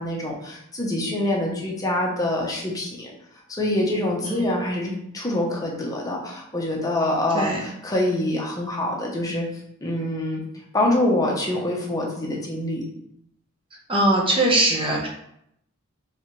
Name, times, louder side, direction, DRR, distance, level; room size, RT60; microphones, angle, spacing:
voice 1, 0.0-3.1 3.6-9.5 9.8-10.4 10.7-12.8, left 1 dB, 15° left, -2 dB, 0.8 m, -25 dB
voice 2, 13.9-15.1, right 1 dB, 25° right, -3 dB, 0.9 m, -21 dB
4.3 x 3.3 x 3.1 m, 0.75 s
head